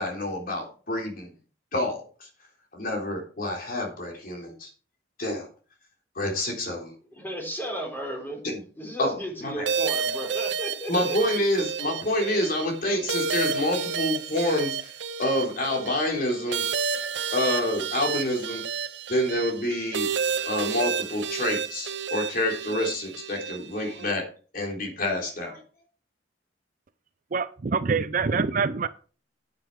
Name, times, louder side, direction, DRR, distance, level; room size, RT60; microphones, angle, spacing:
voice 1, 0.0-1.3 1.7-2.3 2.7-4.7 5.2-5.5 6.2-6.9 8.4-8.6 9.0-9.2 9.4-9.7 10.9-14.9 15.2-16.6 17.3-18.6 19.1-20.1 20.5-24.3 24.5-25.6, left 1 dB, 55° left, 1 dB, 3.5 m, -27 dB
voice 2, 7.1-8.4 8.8-11.4, equal, 10° left, 1 dB, 4.1 m, -34 dB
sound 1, 9.7-24.1, right 6 dB, 80° right, 0.8 m, -31 dB
voice 3, 27.3-28.9, right 5 dB, 45° right, 14 dB, 0.5 m, -25 dB
9.6 x 9.1 x 4.7 m, 0.39 s
head